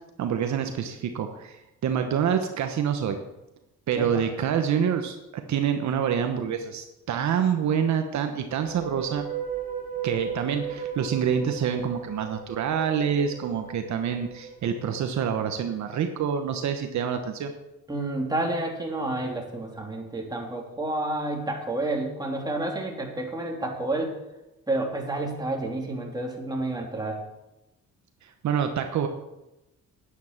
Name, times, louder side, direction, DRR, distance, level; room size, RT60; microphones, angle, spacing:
voice 1, 0.2-1.6 1.8-3.2 3.9-9.3 10.0-17.5 28.2-29.1, right 8 dB, 70° right, 6 dB, 1.1 m, -27 dB
sound 1, 8.6-15.8, right 6 dB, 30° right, 2.9 m, -37 dB
voice 2, 17.9-24.1 24.7-27.2, right 2 dB, 15° right, 0 dB, 2.9 m, -30 dB
9.8 x 9.6 x 5.9 m, 0.95 s
cardioid pair, 90°, 30 cm